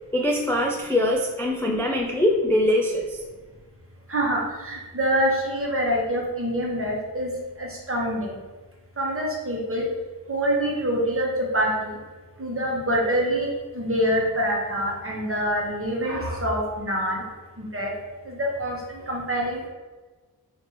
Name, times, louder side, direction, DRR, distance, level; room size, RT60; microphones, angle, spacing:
voice 1, 0.1-3.2, left 1 dB, 5° left, 0 dB, 0.3 m, -23 dB
voice 2, 4.1-7.3 7.6-8.3 9.0-9.8 10.3-11.3 11.5-11.9 12.4-13.5 13.7-17.2 17.7-17.9 18.3-18.8 19.1-19.7, equal, 35° right, -2 dB, 0.9 m, -25 dB
3.2 x 2.5 x 2.9 m, 1.3 s
cardioid pair, 40°, 38 cm